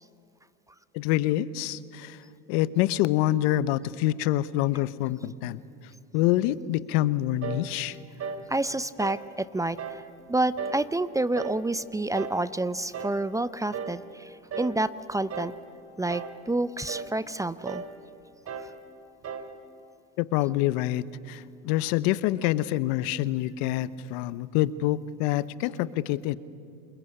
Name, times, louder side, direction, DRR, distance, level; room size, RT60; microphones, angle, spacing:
voice 1, 0.9-5.6 6.1-8.0 20.2-26.4, left 14 dB, 70° left, 17 dB, 1.0 m, -26 dB
sound 1, 7.4-7.7 8.2-8.5 9.0-9.3 9.8-10.1 10.6-10.9 11.3-11.7 12.1-12.4 12.9-13.2 13.7-14.0 14.5-14.8 15.3-15.6 16.1-16.4 16.9-17.2 17.7-18.0 18.5-18.8 19.2-19.6, right 6 dB, 40° right, 2.8 m, -36 dB
voice 2, 8.5-10.0 10.3-15.5 16.0-17.8, right 2 dB, 10° right, 16 dB, 0.6 m, -29 dB
28.0 x 21.0 x 9.9 m, 2.6 s
supercardioid pair, 95°, 35 cm